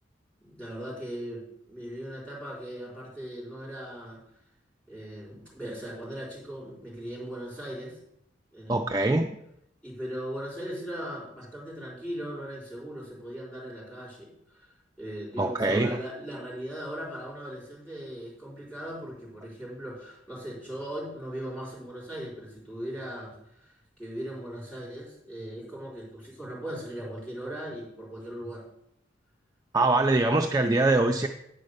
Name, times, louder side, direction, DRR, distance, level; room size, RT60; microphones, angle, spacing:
voice 1, 0.4-4.2 4.9-8.0 8.5-9.0 9.8-28.6, equal, 5° left, -6 dB, 4.0 m, -39 dB
voice 2, 8.7-9.3 15.4-16.0 29.7-31.3, right 2 dB, 20° right, 4 dB, 0.4 m, -23 dB
9.6 x 5.3 x 6.5 m, 0.79 s
head